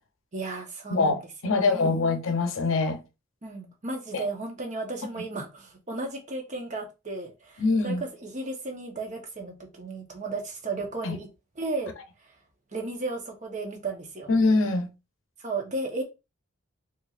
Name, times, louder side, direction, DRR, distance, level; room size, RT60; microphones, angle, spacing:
voice 1, 0.3-2.1 3.4-11.3 11.6-11.9 12.2-12.3 12.7-14.3 15.4-16.0, right 3 dB, 35° right, 0.9 m, -34 dB
voice 2, 0.9-3.0 4.1-4.2 7.6-8.0 11.0-11.2 14.3-14.9, left 3 dB, 70° left, 0.7 m, -24 dB
4.2 x 3.0 x 2.4 m
head